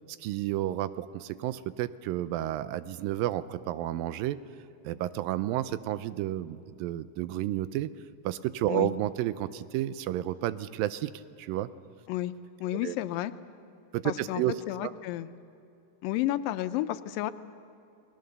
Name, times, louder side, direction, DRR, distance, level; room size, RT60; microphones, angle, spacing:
voice 1, 0.2-4.4 4.8-7.9 8.2-11.1 11.4-11.7 12.8-13.0 13.9-14.5 14.8-14.9, right 14 dB, 90° right, 14 dB, 2.4 m, -31 dB
voice 2, 12.6-13.3 14.0-14.4 14.7-15.3 16.0-17.3, left 14 dB, 85° left, 12 dB, 2.4 m, -31 dB
28.5 x 20.0 x 6.7 m, 2.6 s
omnidirectional pair, 3.9 m